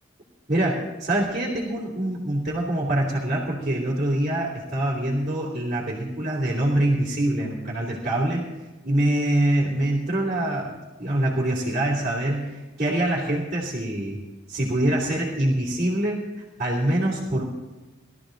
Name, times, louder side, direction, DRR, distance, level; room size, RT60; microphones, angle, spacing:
voice 1, 0.5-8.5 8.8-14.2 14.5-16.3 16.6-17.4, right 1 dB, 35° right, -7 dB, 3.0 m, -24 dB
21.0 x 13.5 x 3.9 m, 1.2 s
head